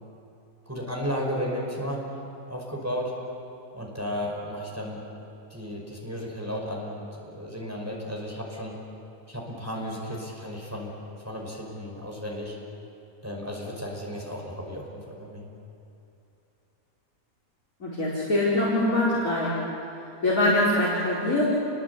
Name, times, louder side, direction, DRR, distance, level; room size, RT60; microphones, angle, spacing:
voice 1, 0.7-2.0 2.5-3.1 3.7-5.0 5.5-8.7 9.3-10.9 11.3-12.6 13.2-15.4, equal, 10° right, -2 dB, 5.4 m, -34 dB
voice 2, 17.8-19.6 20.2-21.4, left 1 dB, 65° left, -6 dB, 5.1 m, -23 dB
30.0 x 21.5 x 8.4 m, 2.8 s
omnidirectional pair, 1.5 m